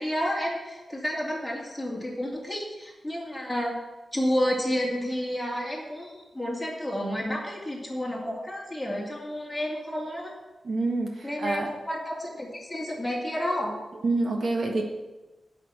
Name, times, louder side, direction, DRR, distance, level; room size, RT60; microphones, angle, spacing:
voice 1, 0.0-3.7 4.1-10.3 11.2-13.7, equal, 5° left, -3 dB, 2.5 m, -30 dB
voice 2, 10.6-11.7 14.0-14.8, right 2 dB, 55° right, 1 dB, 1.4 m, -27 dB
10.5 x 5.9 x 8.3 m, 1.1 s
wide cardioid pair, 165°, 0 cm